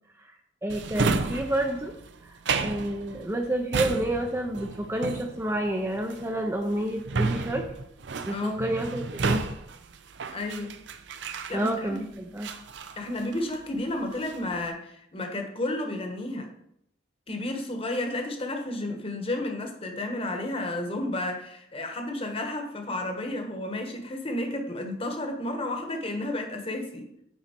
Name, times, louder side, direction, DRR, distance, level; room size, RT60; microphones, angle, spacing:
voice 1, 0.6-1.9 2.2-7.6 8.3-9.4 11.5-12.5, right 1 dB, 15° right, 3 dB, 0.6 m, -29 dB
Drawer open or close, 0.7-12.0 12.4-13.7 14.0-14.5, right 4 dB, 70° right, 0.5 m, -32 dB
voice 2, 8.3-8.6 10.3-10.7 11.5-12.0 13.0-16.5 17.3-27.0, left 1 dB, 30° left, 4 dB, 1.2 m, -32 dB
9.1 x 4.2 x 4.4 m, 0.75 s
head